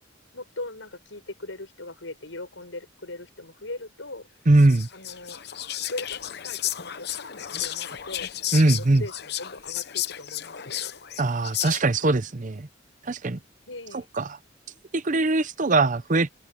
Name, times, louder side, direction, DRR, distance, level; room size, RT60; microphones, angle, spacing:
voice 1, 0.3-4.3 4.9-5.4 5.9-11.0 13.7-14.1, left 2 dB, 85° left, 6.8 m, -40 dB
voice 2, 4.5-4.9 8.5-9.0 11.2-12.7 13.0-13.4 14.2-14.3 14.9-16.3, right 2 dB, 40° right, 0.7 m, -21 dB
Whispering, 4.6-12.0, left 12 dB, 55° left, 0.9 m, -33 dB
open air
head